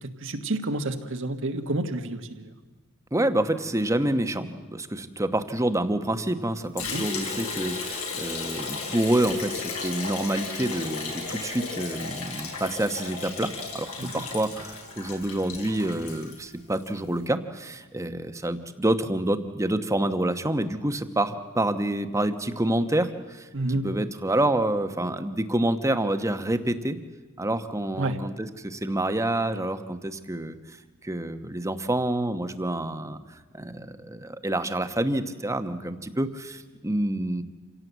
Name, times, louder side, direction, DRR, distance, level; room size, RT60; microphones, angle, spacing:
voice 1, 0.0-2.5 6.8-7.0 14.0-14.2 23.5-23.9 28.0-28.2, right 2 dB, 60° right, 6 dB, 1.5 m, -29 dB
voice 2, 3.1-23.5 23.8-27.0 27.4-30.6 31.0-33.2 33.5-37.4, right 1 dB, 15° right, 9 dB, 1.0 m, -27 dB
Liquid, 6.8-16.9, left 4 dB, 85° left, 4.8 m, -34 dB
27.0 x 17.0 x 8.1 m, 1.3 s
head